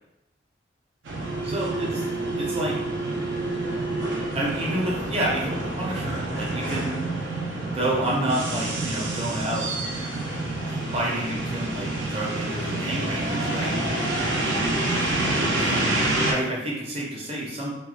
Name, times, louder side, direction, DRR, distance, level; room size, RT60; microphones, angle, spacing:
sound 1, 1.0-16.3, right 2 dB, 75° right, 0.6 m, -27 dB
voice 1, 1.4-2.0 2.4-2.7 4.3-6.9 7.7-9.7 10.9-13.7 15.6-15.9 16.3-17.7, right 1 dB, 30° right, -4 dB, 0.7 m, -29 dB
2.5 x 2.2 x 3.2 m, 0.95 s
head